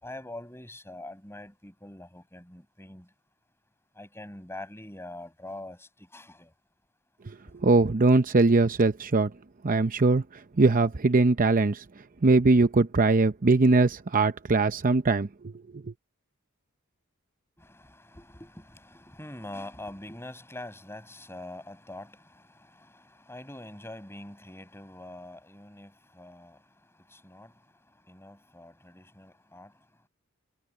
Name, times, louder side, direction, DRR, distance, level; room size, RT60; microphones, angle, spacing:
voice 1, 0.0-3.1 4.0-6.5 17.6-26.6 27.1-27.5 28.1-29.7, left 1 dB, 10° left, 6.2 m, -44 dB
voice 2, 7.6-9.3 9.6-10.2 10.6-11.8 12.2-15.3 15.7-15.8, right 3 dB, 40° right, 0.7 m, -21 dB
head